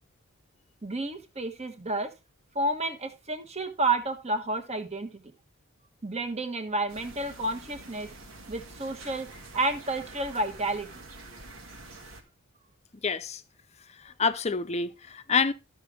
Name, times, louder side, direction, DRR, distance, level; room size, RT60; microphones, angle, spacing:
voice 1, 0.8-2.1 2.5-5.2 6.0-8.1 8.5-9.3 9.5-10.9, right 2 dB, 30° right, 1.2 m, -30 dB
sound 1, 6.9-12.2, right 2 dB, 85° right, 1.8 m, -47 dB
voice 2, 13.0-13.4 14.0-15.5, left 5 dB, 30° left, 0.6 m, -27 dB
12.5 x 6.1 x 3.4 m
head